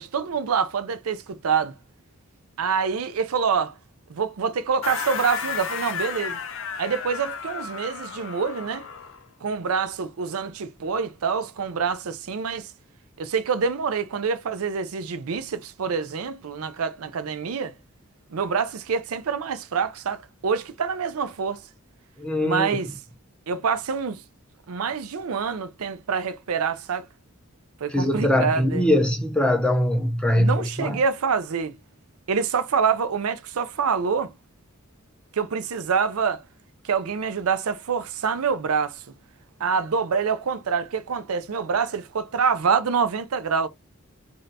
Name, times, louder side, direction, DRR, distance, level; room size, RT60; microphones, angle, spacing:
voice 1, 0.0-1.8 2.6-3.7 4.1-6.4 6.8-8.9 9.4-12.7 13.2-17.7 18.3-21.6 22.4-23.0 23.5-24.2 24.7-27.1 27.8-28.9 30.4-31.8 32.3-34.3 35.3-36.4 36.8-39.0 39.6-43.7, right 6 dB, 85° right, 0.5 m, -26 dB
sound 1, 4.8-9.2, left 6 dB, 60° left, 0.6 m, -33 dB
voice 2, 22.2-22.7 27.9-31.0, left 1 dB, 5° left, 0.6 m, -22 dB
3.3 x 2.7 x 3.9 m
head